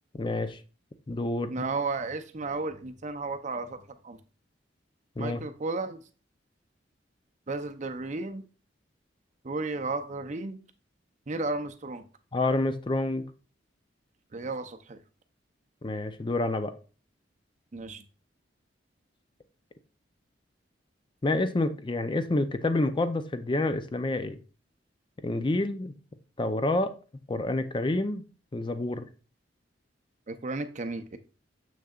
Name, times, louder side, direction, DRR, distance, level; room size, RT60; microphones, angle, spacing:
voice 1, 0.1-0.6 1.1-1.5 5.2-5.4 12.3-13.2 15.8-16.7 21.2-24.4 25.2-25.9 26.4-26.9 27.3-28.2 28.5-29.1, left 2 dB, 25° left, 11 dB, 0.5 m, -28 dB
voice 2, 1.5-4.2 5.2-6.0 7.5-8.4 9.4-10.6 11.3-12.0 14.3-15.0 17.7-18.0 30.3-31.2, right 3 dB, 40° right, 8 dB, 0.6 m, -33 dB
6.7 x 6.3 x 2.4 m, 0.36 s
head